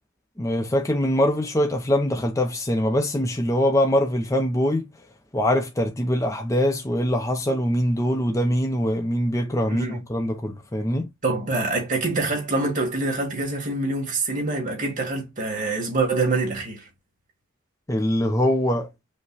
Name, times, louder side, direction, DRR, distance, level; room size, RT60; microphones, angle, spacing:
voice 1, 0.4-4.8 5.3-11.1 17.9-18.9, equal, 15° left, 0.6 m, -23 dB
voice 2, 9.7-10.0 11.2-16.9, right 3 dB, 40° right, 1.8 m, -25 dB
5.4 x 2.3 x 3.9 m
head